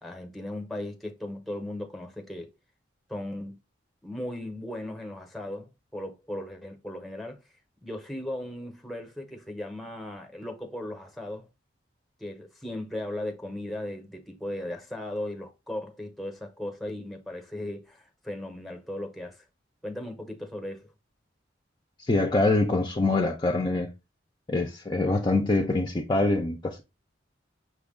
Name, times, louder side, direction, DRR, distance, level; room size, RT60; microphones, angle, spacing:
voice 1, 0.0-2.5 3.1-3.6 4.0-7.4 7.8-11.5 12.2-19.4 19.8-20.9, left 1 dB, ahead, 0.8 m, -37 dB
voice 2, 22.1-23.9 24.5-26.8, left 2 dB, 25° left, 0.5 m, -24 dB
5.9 x 2.3 x 3.5 m
head